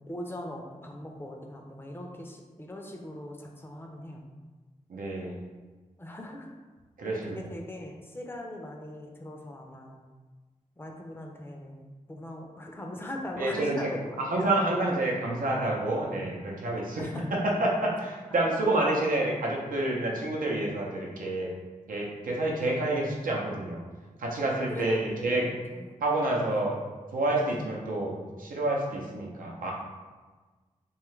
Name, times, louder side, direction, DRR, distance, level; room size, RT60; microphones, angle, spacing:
voice 1, 0.1-4.3 6.0-6.5 7.0-10.0 10.8-14.9 16.8-17.4 18.8-18.9 24.7-25.9 26.4-26.6, left 1 dB, 15° left, 1 dB, 0.5 m, -41 dB
voice 2, 4.9-5.4 7.0-7.4 13.4-13.9 14.2-21.5 21.9-23.8 24.2-25.5 26.0-26.8 27.1-29.7, right 2 dB, 80° right, -2 dB, 0.6 m, -28 dB
2.7 x 2.4 x 3.1 m, 1.3 s
cardioid pair, 55°, 14 cm